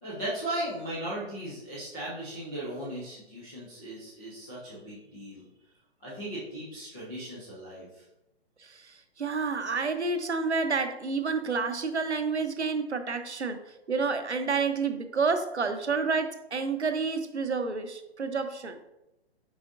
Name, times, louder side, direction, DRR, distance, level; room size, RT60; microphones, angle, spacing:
voice 1, 0.0-5.4 6.0-8.0, right 1 dB, 5° left, -9 dB, 0.3 m, -37 dB
voice 2, 8.6-13.6 13.9-18.8, right 4 dB, 85° right, 8 dB, 0.9 m, -29 dB
7.9 x 5.0 x 2.5 m, 0.91 s
figure-of-eight pair, 130°, 33 cm